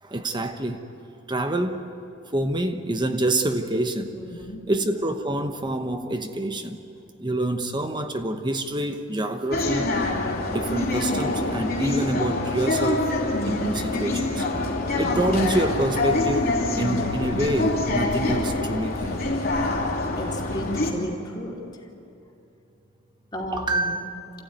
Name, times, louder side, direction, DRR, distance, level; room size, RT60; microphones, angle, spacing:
voice 1, 0.0-0.8 1.3-1.8 2.3-4.1 4.7-6.8 7.2-9.9 10.5-13.2 13.4-14.5 15.0-19.2 23.5-24.1, right 1 dB, 20° right, 6 dB, 1.0 m, -26 dB
voice 2, 4.1-4.6 20.1-21.6 23.3-24.0, equal, 20° left, -1 dB, 2.8 m, -34 dB
sound 1, 9.5-20.9, left 2 dB, 50° left, 2.9 m, -25 dB
27.5 x 15.5 x 9.5 m, 2.7 s
head